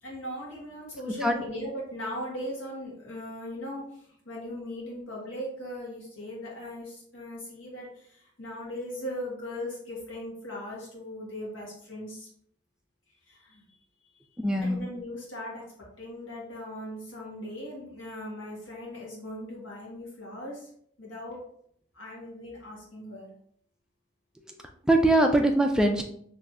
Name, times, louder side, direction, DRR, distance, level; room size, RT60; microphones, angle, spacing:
voice 1, 0.0-12.3 13.3-13.6 14.6-15.6 16.0-20.7 21.0-21.4 21.9-23.3, left 1 dB, 80° left, -4 dB, 1.5 m, -39 dB
voice 2, 14.4-14.8 24.9-26.0, right 1 dB, 5° right, 3 dB, 0.3 m, -22 dB
4.2 x 3.2 x 2.4 m, 0.66 s
head